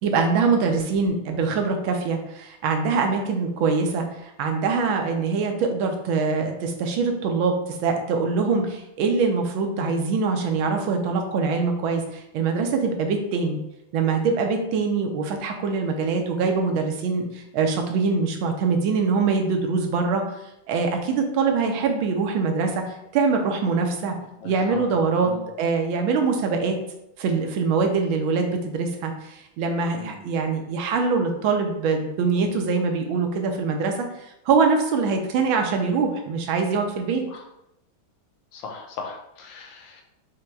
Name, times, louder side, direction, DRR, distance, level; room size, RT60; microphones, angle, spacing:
voice 1, 0.0-7.5 7.8-13.6 13.9-20.2 20.7-24.1 24.4-25.3 25.6-26.8 27.2-34.1 34.5-37.2, right 4 dB, 80° right, 4 dB, 1.4 m, -23 dB
voice 2, 24.4-24.9 25.2-25.4 29.9-30.3 37.3-37.4 38.5-40.0, left 4 dB, 80° left, 1 dB, 1.4 m, -38 dB
5.4 x 2.8 x 2.2 m, 0.82 s
omnidirectional pair, 2.2 m